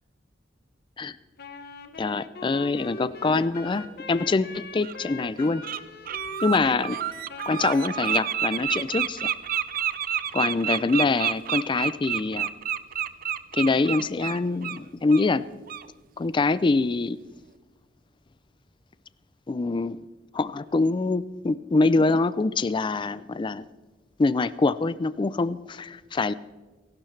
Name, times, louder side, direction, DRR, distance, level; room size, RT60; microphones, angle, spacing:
Wind instrument woodwind instrument, 1.4-8.3, left 4 dB, 60° left, 1.2 m, -42 dB
voice 1, 2.0-5.6 6.4-7.0 7.5-9.3 10.3-12.5 13.5-15.4 16.2-17.2 19.5-20.0 20.3-23.7 24.2-26.3, left 3 dB, 25° left, 16 dB, 0.4 m, -24 dB
Bird, 4.0-4.1 4.8-5.0 5.4-5.8 6.0-14.8 15.1-15.3 15.7-15.8, right 10 dB, 50° right, 0.5 m, -29 dB
29.5 x 12.0 x 3.3 m, 1.2 s
head